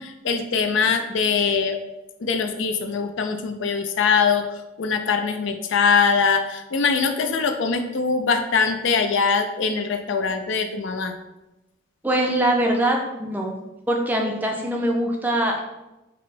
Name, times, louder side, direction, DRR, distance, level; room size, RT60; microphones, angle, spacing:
voice 1, 0.0-1.8 2.2-11.1, left 5 dB, 65° left, 6 dB, 0.4 m, -22 dB
voice 2, 12.0-13.5 13.9-15.6, right 1 dB, 10° right, 0 dB, 0.5 m, -22 dB
5.2 x 2.1 x 4.1 m, 0.96 s
head